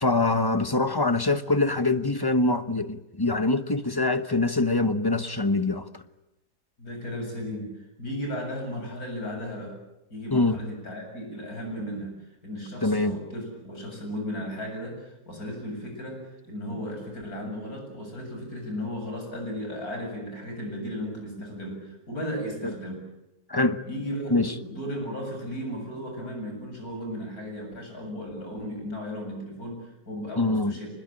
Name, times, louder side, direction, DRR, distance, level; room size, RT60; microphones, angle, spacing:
voice 1, 0.0-6.0 10.3-10.6 12.8-13.2 22.6-22.7 23.5-23.8 24.3-24.5 30.4-30.8, left 2 dB, 20° left, 0.8 m, -24 dB
voice 2, 6.8-9.8 10.1-23.0 23.8-30.9, equal, 60° left, 8.2 m, -35 dB
26.0 x 21.0 x 8.9 m
omnidirectional pair, 1.8 m